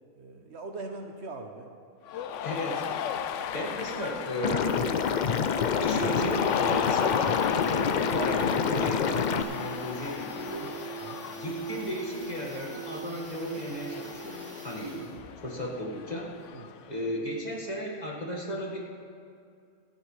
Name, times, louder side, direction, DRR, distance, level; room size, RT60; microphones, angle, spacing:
voice 1, 0.2-1.7 11.0-11.2 16.5-16.8, right 3 dB, 60° right, 4 dB, 1.0 m, -41 dB
Cheering, 2.1-16.9, left 9 dB, 70° left, 0.9 m, -35 dB
voice 2, 2.4-3.0 3.5-4.8 5.8-10.7 11.3-15.1 15.4-16.3 16.9-18.8, equal, 30° left, -2 dB, 1.8 m, -35 dB
sound 1, 3.7-3.8 4.1-4.2 4.4-15.3 15.6-15.7, right 6 dB, 85° right, 2.3 m, -40 dB
Liquid, 4.4-9.4, left 7 dB, 85° left, 0.4 m, -27 dB
24.5 x 8.7 x 3.2 m, 2.3 s
omnidirectional pair, 1.4 m